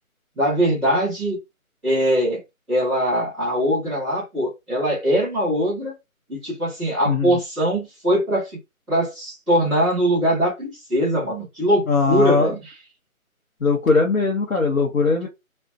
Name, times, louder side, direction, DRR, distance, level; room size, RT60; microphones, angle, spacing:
voice 1, 0.4-1.4 1.8-2.4 2.7-5.9 6.3-8.5 8.9-12.6, equal, ahead, 0.8 m, -21 dB
voice 2, 7.1-7.4 11.9-12.5 13.6-15.3, left 4 dB, 70° left, 0.7 m, -20 dB
2.5 x 2.1 x 2.5 m
figure-of-eight pair, 175°, 43 cm